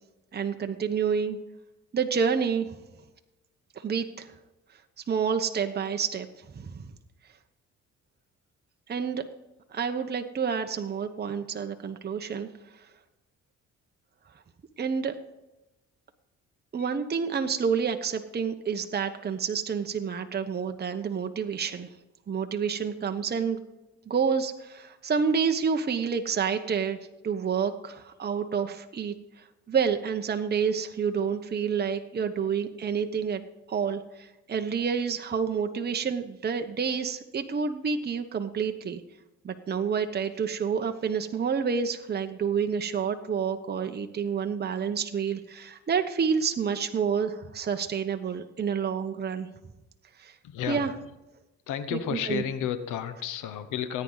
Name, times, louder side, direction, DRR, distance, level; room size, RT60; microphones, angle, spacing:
voice 1, 0.3-1.4 1.9-2.7 3.8-4.3 5.1-6.3 6.5-6.9 8.9-9.2 9.7-12.5 14.8-15.1 16.7-21.9 22.3-23.6 24.1-27.0 27.2-33.4 33.7-39.0 39.4-49.5 50.2-50.3 50.7-50.9 52.1-52.4, right 6 dB, 35° right, 6 dB, 1.0 m, -29 dB
voice 2, 50.4-50.9 51.7-54.0, left 9 dB, 85° left, 11 dB, 1.0 m, -32 dB
19.0 x 9.6 x 4.0 m, 1.0 s
cardioid pair, 90°, 30 cm